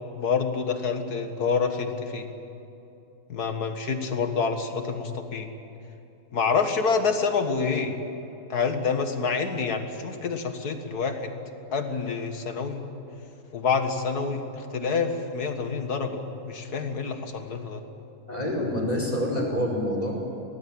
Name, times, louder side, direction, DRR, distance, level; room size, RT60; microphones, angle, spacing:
voice 1, 0.2-2.3 3.3-5.5 6.3-8.0 8.5-11.4 11.7-12.8 13.5-17.8, left 5 dB, 65° left, 6 dB, 2.2 m, -27 dB
voice 2, 18.3-20.2, left 1 dB, 20° left, -1 dB, 4.9 m, -27 dB
23.5 x 18.5 x 8.8 m, 2.9 s
omnidirectional pair, 1.8 m